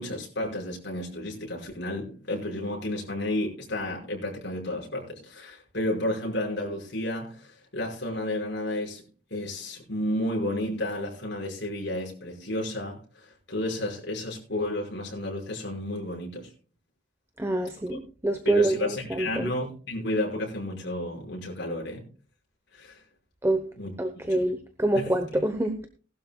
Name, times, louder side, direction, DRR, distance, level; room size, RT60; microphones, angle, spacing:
voice 1, 0.0-9.0 9.3-16.5 17.9-18.0 18.4-22.0 22.7-23.0 23.8-23.9 24.3-24.4 24.9-25.1, left 1 dB, 60° left, 5.7 m, -32 dB
voice 2, 17.4-19.5 23.4-23.6 24.0-25.9, right 1 dB, 15° right, 0.9 m, -26 dB
19.5 x 12.0 x 2.3 m
head